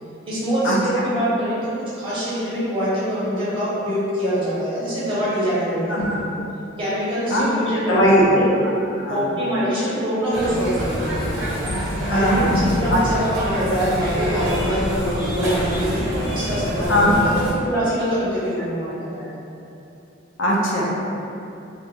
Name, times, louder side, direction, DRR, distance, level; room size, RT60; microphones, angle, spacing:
voice 1, 0.3-6.3 6.8-8.5 9.1-11.7 12.1-19.3, equal, 25° right, -11 dB, 0.8 m, -24 dB
voice 2, 7.7-8.3 8.9-9.2 12.1-13.0 16.9-17.1 20.4-20.9, equal, 70° left, -4 dB, 0.5 m, -19 dB
sound 1, 10.3-17.5, equal, 80° right, 0.5 m, -26 dB
2.3 x 2.2 x 2.8 m, 2.7 s
head